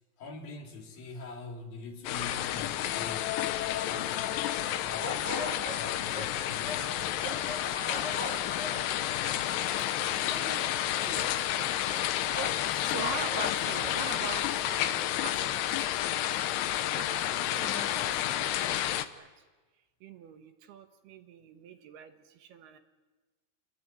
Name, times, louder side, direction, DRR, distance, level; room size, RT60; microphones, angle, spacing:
voice 1, 0.2-5.2 5.6-8.7, left 3 dB, 65° left, 2 dB, 4.3 m, -45 dB
sound 1, 2.1-19.1, left 12 dB, 85° left, 3.1 m, -30 dB
sound 2, 4.9-14.0, left 1 dB, 15° left, 1.2 m, -41 dB
voice 2, 7.8-8.2 9.8-19.4 20.0-22.8, right 8 dB, 75° right, 7 dB, 3.5 m, -45 dB
28.5 x 21.5 x 9.6 m, 1.3 s
omnidirectional pair, 4.6 m